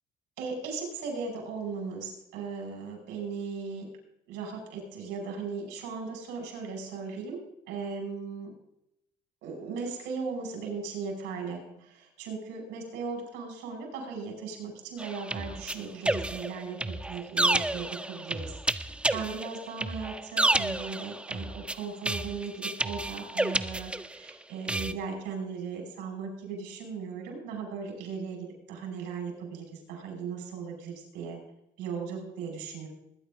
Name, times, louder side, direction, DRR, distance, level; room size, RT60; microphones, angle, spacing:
voice 1, 0.4-3.9 4.3-7.4 7.7-8.5 9.4-31.4 31.8-32.9, right 5 dB, 90° right, 1 dB, 5.6 m, -37 dB
sound 1, 15.0-24.3 24.7-24.9, right 2 dB, 5° right, 0.5 m, -30 dB
21.0 x 10.0 x 3.7 m, 0.81 s
cardioid pair, 110°, 17 cm